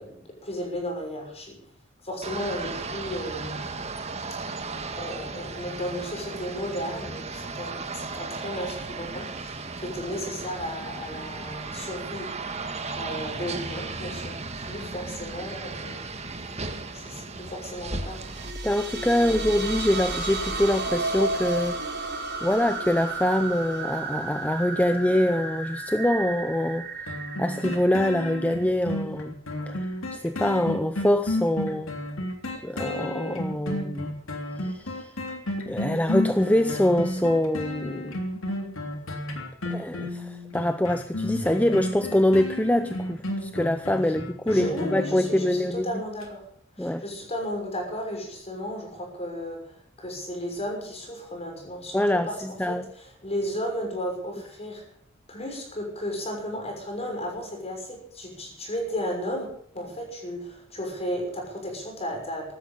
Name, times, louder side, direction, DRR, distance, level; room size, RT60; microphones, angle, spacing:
voice 1, 0.0-1.7 2.0-3.6 4.4-12.4 13.0-18.3 19.2-19.7 44.0-44.1 44.5-46.5 46.8-54.9 55.3-62.5, equal, 30° left, 2 dB, 6.2 m, -34 dB
sound 1, 2.2-18.5, right 3 dB, 35° right, 1.7 m, -35 dB
sound 2, 18.1-28.7, right 3 dB, 55° right, 5.3 m, -33 dB
voice 2, 18.6-22.1 22.4-26.9 27.4-29.4 29.7-31.9 32.6-34.1 34.6-35.1 35.7-38.2 39.7-46.0 46.8-47.0 51.9-52.3 52.6-52.8, left 1 dB, 5° left, 10 dB, 0.7 m, -24 dB
sound 3, 27.1-45.8 46.2-46.3, left 1 dB, 85° left, 3.2 m, -32 dB
16.0 x 12.5 x 6.6 m, 0.62 s
head